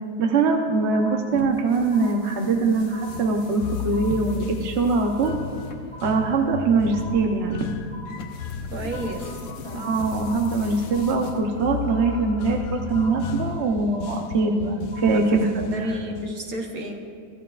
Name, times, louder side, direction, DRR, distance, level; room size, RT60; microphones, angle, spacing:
voice 1, 0.2-5.3 6.0-7.7 9.6-15.5, right 3 dB, 50° right, 2 dB, 1.1 m, -22 dB
sound 1, 0.9-1.6 1.9-2.6 2.9-3.6 3.9-4.6 4.9-5.6 5.9-6.6 6.9-7.6 7.9-8.6 8.9-9.6 9.9-10.6 10.9-11.6 11.9-12.6 12.9-13.6 13.9-14.6 14.9-15.6, left 1 dB, 10° right, 4.0 m, -43 dB
sound 2, 1.3-11.9, left 3 dB, 55° left, 1.3 m, -42 dB
sound 3, 3.6-16.4, left 9 dB, 90° left, 1.2 m, -35 dB
voice 2, 8.7-9.4 15.1-17.0, right 1 dB, 65° right, 2 dB, 1.6 m, -32 dB
24.5 x 14.0 x 2.5 m, 2.2 s
omnidirectional pair, 1.7 m